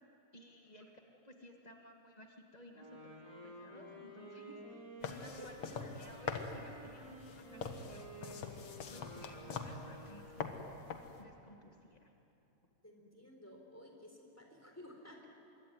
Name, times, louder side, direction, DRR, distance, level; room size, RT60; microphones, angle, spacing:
voice 1, 0.3-10.7 11.2-12.1, left 1 dB, 75° left, 2 dB, 0.3 m, -57 dB
Wind instrument woodwind instrument, 2.7-10.6, equal, 25° right, 7.3 m, -52 dB
sound 1, 5.0-11.2, left 5 dB, 50° left, 2.0 m, -44 dB
voice 2, 5.4-5.7 12.8-15.3, left 1 dB, 5° left, 1 dB, 3.8 m, -54 dB
25.0 x 23.0 x 9.4 m, 2.9 s
omnidirectional pair, 4.0 m